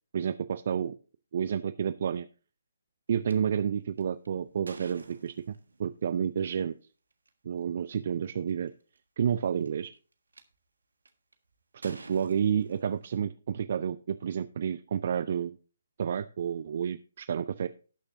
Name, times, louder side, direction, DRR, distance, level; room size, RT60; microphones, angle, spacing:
voice 1, 0.1-1.0 1.3-2.3 3.1-5.5 5.8-6.7 7.4-8.7 9.2-9.9 11.8-15.6 16.0-17.7, right 8 dB, 45° right, 14 dB, 0.4 m, -30 dB
sound 1, 3.3-3.4 4.0-5.8 7.1-7.3 7.9-8.0 8.2-8.7 9.4-10.4 11.0-11.3 11.8-13.2, right 3 dB, 65° right, 1.6 m, -49 dB
18.0 x 6.5 x 2.7 m, 0.36 s
figure-of-eight pair, 135°, 0 cm